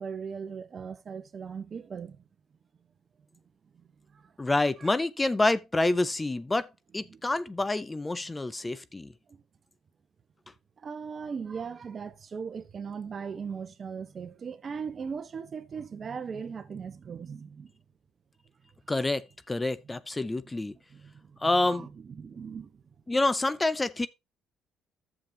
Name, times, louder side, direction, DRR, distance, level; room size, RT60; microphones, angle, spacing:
voice 1, 0.0-2.2 4.1-4.3 4.8-4.9 7.1-7.2 8.6-8.7 9.3-9.4 10.8-17.7 20.6-22.8, right 6 dB, 45° right, 1.0 m, -39 dB
voice 2, 4.4-6.7 6.9-9.1 18.9-19.2 19.5-20.7 21.4-21.9 23.1-24.1, left 2 dB, 20° left, 0.5 m, -27 dB
11.5 x 7.2 x 2.8 m
supercardioid pair, 85°, 0 cm